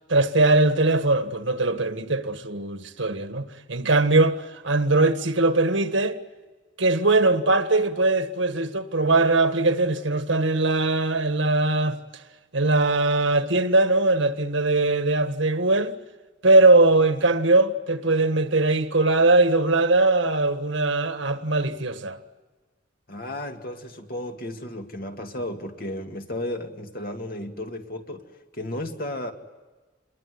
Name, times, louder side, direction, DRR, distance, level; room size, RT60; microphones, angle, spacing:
voice 1, 0.1-6.2 6.8-12.0 12.5-16.0 16.4-22.2, right 2 dB, 75° right, 1.7 m, -21 dB
voice 2, 23.1-28.2 28.5-29.3, left 1 dB, 45° left, 2.4 m, -33 dB
28.5 x 22.0 x 9.6 m
head